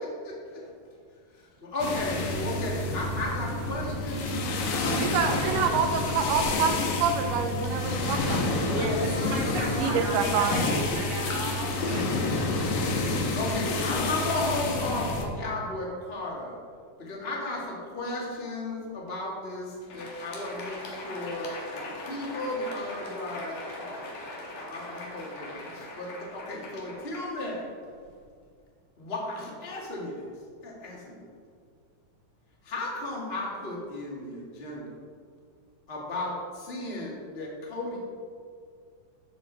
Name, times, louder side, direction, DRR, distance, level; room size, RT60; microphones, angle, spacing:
voice 1, 0.2-0.6 1.3-4.4 4.8-5.6 8.7-10.0 13.3-16.6 17.0-27.6 29.0-30.3 30.6-31.2 32.6-34.9 35.9-38.0, left 2 dB, 25° left, -3 dB, 1.7 m, -35 dB
sound 1, 1.8-15.2, left 2 dB, 85° left, 2.8 m, -29 dB
voice 2, 4.9-8.8 9.8-10.7, right 5 dB, 85° right, 5 dB, 2.6 m, -27 dB
voice 3, 8.7-12.1, right 1 dB, 70° right, -1 dB, 3.0 m, -34 dB
Crowd, 19.7-28.2, left 2 dB, 70° left, 2.9 m, -41 dB
13.5 x 7.0 x 4.0 m, 2.1 s
omnidirectional pair, 3.7 m